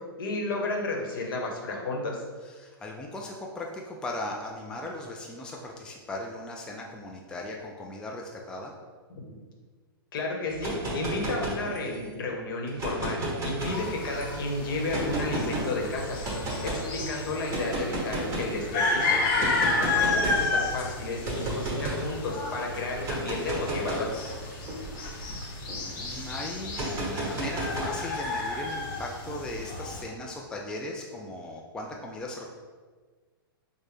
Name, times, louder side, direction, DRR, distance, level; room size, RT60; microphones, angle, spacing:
voice 1, 0.2-2.2 9.1-9.3 10.1-16.2 16.6-19.2 19.8-24.1, left 2 dB, 65° left, 0 dB, 1.0 m, -32 dB
voice 2, 2.4-8.7 19.1-19.6 25.8-32.4, left 2 dB, 5° left, -1 dB, 0.3 m, -38 dB
sound 1, 10.5-12.1 12.7-14.2 14.9-15.7 16.2-16.8 17.5-18.6 19.4-20.5 21.2-22.1 22.9-25.8 26.7-28.3, right 1 dB, 25° right, 1.3 m, -32 dB
sound 2, 13.6-30.0, left 3 dB, 40° left, 0.7 m, -32 dB
4.8 x 2.1 x 3.3 m, 1.4 s
hypercardioid pair, 120°, 12 cm